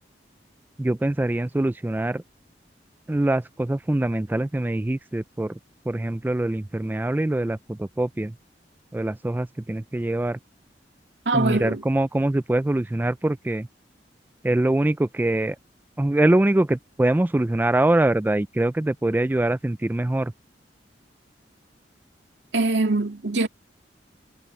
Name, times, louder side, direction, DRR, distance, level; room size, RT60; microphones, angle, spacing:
voice 1, 0.8-2.2 3.1-5.6 5.9-8.3 8.9-10.4 11.3-13.7 14.4-15.6 16.0-20.3, right 1 dB, 10° right, 0.3 m, -23 dB
voice 2, 11.3-11.8 22.5-23.5, right 2 dB, 80° right, 2.2 m, -23 dB
head